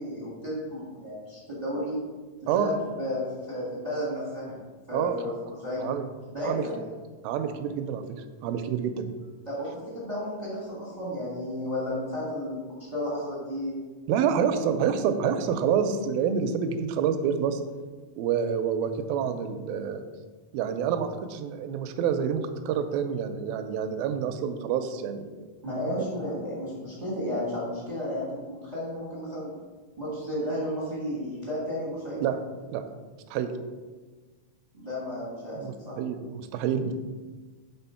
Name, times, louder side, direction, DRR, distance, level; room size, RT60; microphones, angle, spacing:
voice 1, 0.0-2.0 2.5-4.6 4.9-5.8 6.3-6.8 9.4-13.8 14.5-14.6 25.6-29.5 30.0-32.2 34.7-35.6 35.8-36.0, left 1 dB, 35° right, -7 dB, 0.6 m, -33 dB
voice 2, 4.9-5.3 5.8-6.0 6.4-6.7 7.2-8.0 8.4-9.1 14.1-17.6 18.2-20.0 20.5-25.5 32.2-32.4 32.7-32.8 33.3-33.5 35.6-36.9, right 7 dB, 85° right, 8 dB, 2.3 m, -27 dB
6.9 x 3.9 x 5.6 m, 1.3 s
omnidirectional pair, 4.2 m